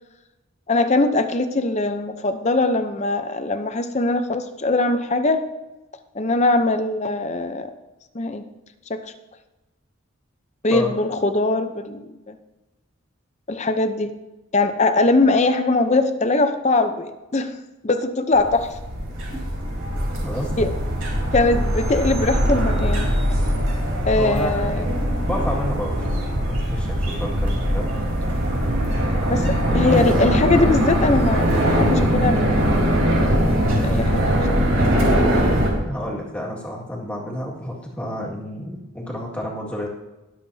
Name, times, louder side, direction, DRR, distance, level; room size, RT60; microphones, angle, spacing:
voice 1, 0.7-5.4 6.1-7.7 8.1-8.4 8.9-9.0 10.6-12.4 13.5-14.1 14.5-17.6 17.8-18.7 20.6-20.7 21.3-23.1 24.1-24.8 29.3-32.7 33.5-34.2, left 2 dB, 30° left, 9 dB, 0.7 m, -21 dB
sound 1, 18.3-35.7, equal, 70° right, 3.7 m, -21 dB
voice 2, 20.2-20.7 24.2-24.8 25.2-26.0 26.7-27.9 29.7-30.1 35.8-39.9, equal, 5° left, -3 dB, 1.9 m, -29 dB
21.0 x 7.5 x 2.8 m, 1.0 s
head